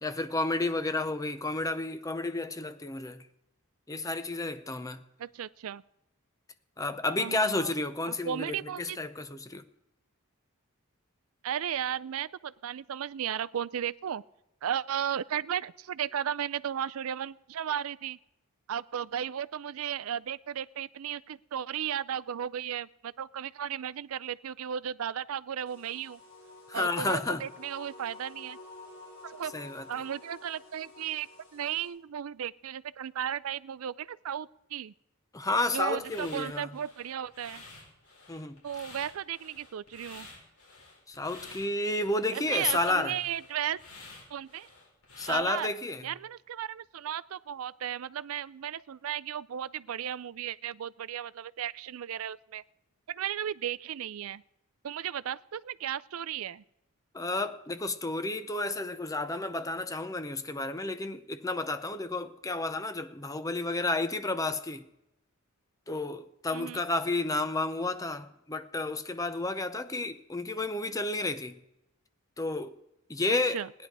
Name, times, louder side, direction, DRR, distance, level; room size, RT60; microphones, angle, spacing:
voice 1, 0.0-3.3 3.9-5.0 6.8-9.6 26.7-27.4 29.5-29.9 35.3-36.7 38.3-38.6 41.1-43.2 45.2-46.1 57.1-64.9 65.9-71.6 72.4-72.8 73.1-73.6, left 2 dB, 15° left, 0.6 m, -31 dB
voice 2, 5.2-5.8 7.2-7.7 8.1-9.0 11.4-14.2 14.6-18.2 18.7-26.2 26.7-28.6 29.2-29.5 29.9-34.9 35.7-37.6 38.6-40.3 42.3-43.8 44.3-44.7 45.3-45.7 46.0-52.6 53.1-54.4 54.8-56.6 66.5-66.8 73.5-73.7, right 9 dB, 70° right, 0.4 m, -35 dB
sound 1, 25.7-31.9, left 2 dB, 55° left, 3.9 m, -50 dB
sound 2, 35.5-45.3, left 3 dB, 85° left, 4.9 m, -51 dB
17.0 x 10.5 x 4.7 m
head